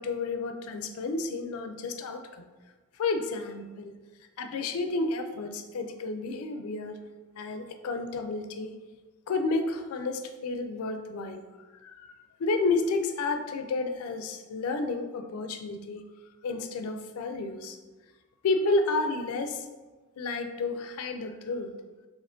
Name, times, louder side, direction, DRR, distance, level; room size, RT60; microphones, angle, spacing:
voice 1, 0.0-2.5 3.0-3.9 4.4-7.0 7.4-8.7 9.3-11.5 11.8-12.1 12.4-16.0 16.4-17.8 18.4-19.7 20.2-21.7, left 3 dB, 80° left, 7 dB, 0.4 m, -31 dB
4.2 x 3.0 x 2.5 m, 1.3 s
head